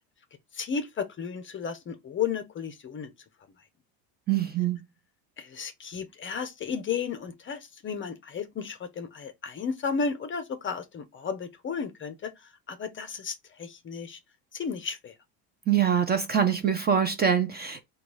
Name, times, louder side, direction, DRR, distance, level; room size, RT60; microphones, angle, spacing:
voice 1, 0.5-3.1 5.4-12.3 12.7-14.2 14.5-15.1, left 6 dB, 25° left, 0.5 m, -33 dB
voice 2, 4.3-4.8 15.7-17.8, right 8 dB, 20° right, 0.5 m, -24 dB
3.8 x 2.4 x 4.6 m
supercardioid pair, 105°, 48 cm